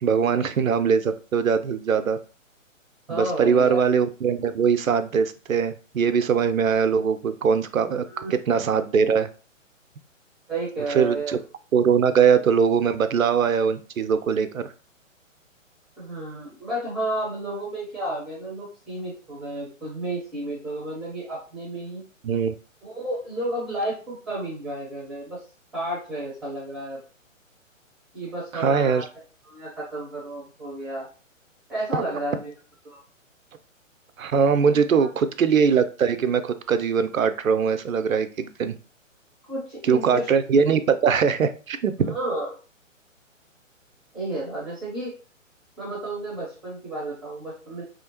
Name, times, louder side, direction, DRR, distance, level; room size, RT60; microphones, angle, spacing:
voice 1, 0.0-2.2 3.1-8.0 8.3-9.3 10.9-11.4 11.7-14.7 22.2-22.5 28.5-29.0 31.9-32.0 34.2-38.8 39.9-42.2, right 6 dB, 80° right, 11 dB, 0.5 m, -21 dB
voice 2, 3.1-3.8 8.1-8.3 10.5-11.4 16.0-22.0 22.8-25.4 25.7-27.0 28.1-29.0 29.4-31.1 31.7-32.5 32.8-33.0 35.0-35.1 39.5-40.3 42.1-42.6 44.1-45.1 45.8-47.8, right 1 dB, ahead, -7 dB, 0.5 m, -32 dB
3.3 x 2.8 x 2.6 m, 0.36 s
figure-of-eight pair, 130°, 40 cm